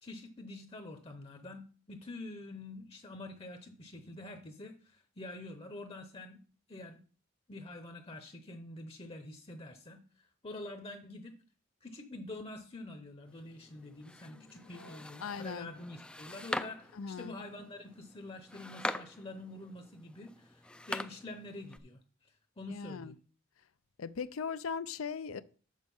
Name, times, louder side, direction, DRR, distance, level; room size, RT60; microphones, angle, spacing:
voice 1, 0.0-6.4 6.7-7.0 7.5-10.0 10.4-11.3 11.8-23.1, left 2 dB, 30° left, 0.8 m, -46 dB
sound 1, 13.3-21.8, left 1 dB, 5° left, 0.3 m, -44 dB
voice 2, 14.2-15.7 16.9-17.4 22.7-23.2 24.0-25.4, left 6 dB, 85° left, 0.5 m, -40 dB
6.5 x 6.3 x 5.4 m
head